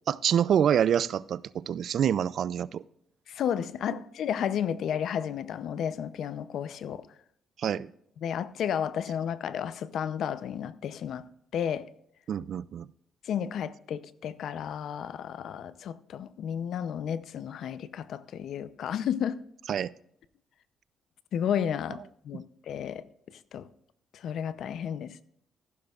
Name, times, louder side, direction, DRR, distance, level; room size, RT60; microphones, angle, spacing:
voice 1, 0.1-2.8 7.6-7.9 12.3-12.9 19.7-19.9, right 9 dB, 65° right, 0.4 m, -26 dB
voice 2, 3.3-7.0 8.2-11.3 11.5-11.9 13.2-19.4 21.3-23.7 24.1-25.2, left 8 dB, 70° left, 0.6 m, -32 dB
14.5 x 12.0 x 2.4 m
cardioid pair, 90°, 0 cm